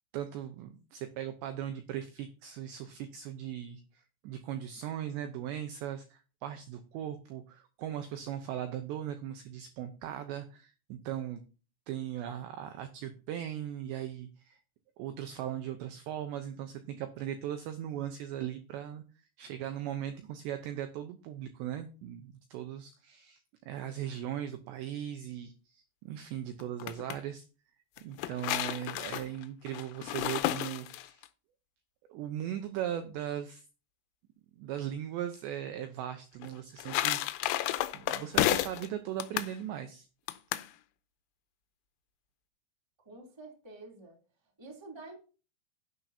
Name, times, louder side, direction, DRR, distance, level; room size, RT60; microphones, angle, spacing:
voice 1, 0.1-11.4 11.9-14.6 15.0-19.0 19.4-27.4 28.0-31.2 32.1-33.6 34.6-37.5 37.9-40.1, right 10 dB, 80° right, 7 dB, 2.6 m, -38 dB
sound 1, 26.6-27.2 28.0-31.3 36.4-38.9 39.2-39.5 40.3-40.7, left 14 dB, 85° left, 3.3 m, -32 dB
voice 2, 43.0-44.2 44.6-45.2, right 2 dB, 10° right, -1 dB, 1.6 m, -48 dB
12.0 x 11.0 x 2.8 m, 0.35 s
omnidirectional pair, 6.0 m